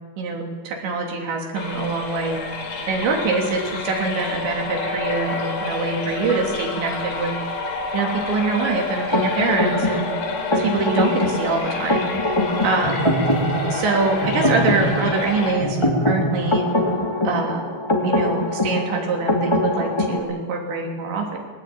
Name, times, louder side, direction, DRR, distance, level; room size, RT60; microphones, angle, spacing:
voice 1, 0.2-2.4 2.9-7.4 7.9-10.1 10.5-12.1 12.6-13.1 13.7-16.7 17.2-17.7 18.0-21.4, right 4 dB, 65° right, 1 dB, 5.4 m, -24 dB
sound 1, 1.5-15.6, left 3 dB, 55° left, 4.4 m, -29 dB
sound 2, 9.1-20.2, left 1 dB, 35° left, 0.4 m, -23 dB
21.5 x 18.5 x 8.9 m, 1.5 s
omnidirectional pair, 5.6 m